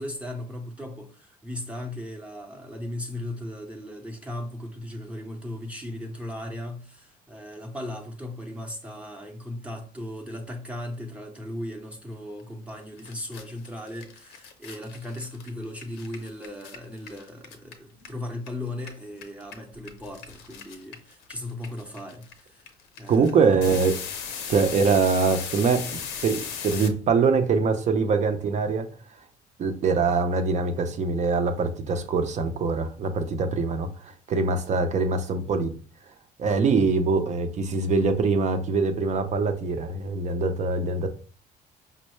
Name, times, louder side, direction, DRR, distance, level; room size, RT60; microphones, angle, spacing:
voice 1, 0.0-22.7 23.0-23.8, left 1 dB, 5° right, 0.7 m, -37 dB
sound 1, 12.7-12.8 13.0-18.5 18.8-26.9, left 7 dB, 90° left, 0.7 m, -37 dB
voice 2, 23.1-24.0 24.5-25.8 26.2-28.9 29.6-35.7 36.4-41.1, right 4 dB, 45° right, 0.6 m, -23 dB
5.3 x 2.0 x 3.1 m
cardioid pair, 110°, 17 cm